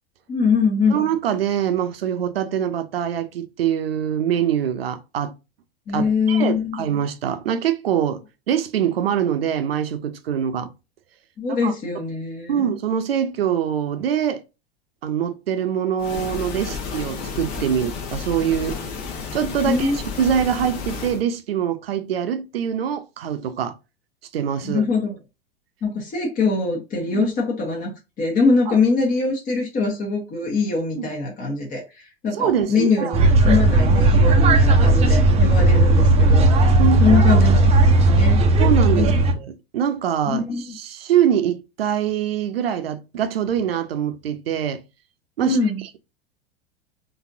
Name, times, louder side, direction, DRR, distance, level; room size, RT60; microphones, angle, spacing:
voice 1, 0.3-1.0 5.9-6.8 11.4-12.6 19.6-20.0 24.6-25.1 25.8-36.4 37.0-37.8 38.1-38.4 38.9-39.3 40.3-40.7 45.4-45.8, left 4 dB, 25° left, 1.1 m, -23 dB
voice 2, 0.9-5.3 5.9-10.7 11.5-11.7 12.5-14.4 15.0-18.8 19.3-19.9 20.2-23.8 24.3-24.8 27.1-27.3 28.7-28.8 31.0-31.1 32.4-33.3 36.8-37.4 38.6-44.8 45.4-45.6, right 9 dB, 70° right, 0.6 m, -24 dB
sound 1, 16.0-21.2, left 5 dB, 45° left, 1.0 m, -31 dB
sound 2, 33.1-39.3, right 2 dB, 20° right, 0.6 m, -15 dB
4.0 x 2.7 x 2.6 m
figure-of-eight pair, 90°, 31 cm